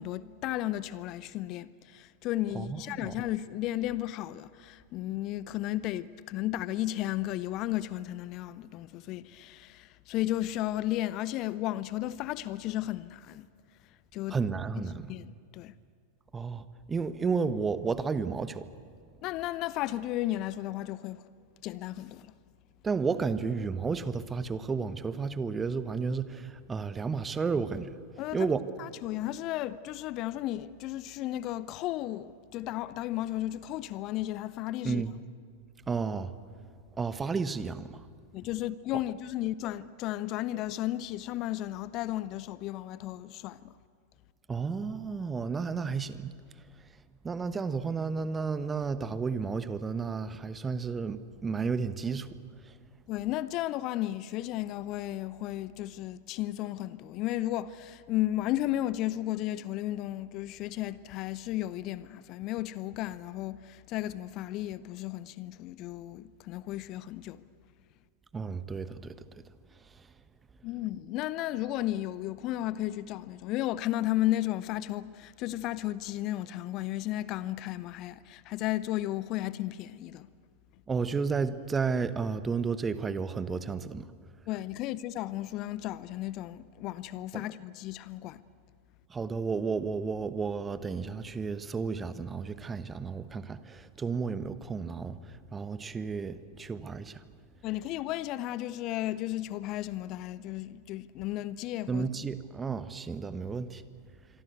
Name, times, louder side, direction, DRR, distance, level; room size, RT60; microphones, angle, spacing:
voice 1, 0.0-13.5 14.1-14.4 14.8-15.7 19.2-21.2 21.6-22.3 28.2-28.5 28.8-35.0 38.3-43.7 53.1-67.4 70.6-80.3 84.5-88.4 97.6-102.1, left 14 dB, 40° left, 0.7 m, -34 dB
voice 2, 2.5-3.1 14.3-15.1 16.3-18.7 22.8-28.0 28.3-28.6 34.8-35.1 35.9-36.3 36.9-38.1 44.5-46.3 47.2-52.3 52.6-52.8 68.3-69.1 69.8-70.1 80.9-84.1 87.3-87.4 89.1-97.2 101.9-103.8, right 5 dB, 15° right, 1.2 m, -32 dB
26.5 x 23.5 x 8.2 m
figure-of-eight pair, 90°, 0 cm